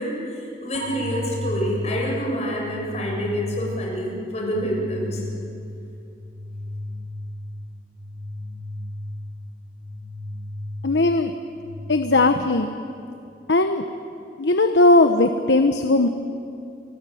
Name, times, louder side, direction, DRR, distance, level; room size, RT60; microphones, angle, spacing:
voice 1, 0.0-5.2, equal, 40° left, -2 dB, 7.4 m, -27 dB
sound 1, 0.7-12.7, left 1 dB, 85° right, 1.7 m, -34 dB
voice 2, 10.8-11.3 11.9-12.7 13.5-13.8 14.4-16.1, left 2 dB, 85° left, 7 dB, 1.1 m, -18 dB
29.0 x 19.0 x 9.4 m, 2.6 s
head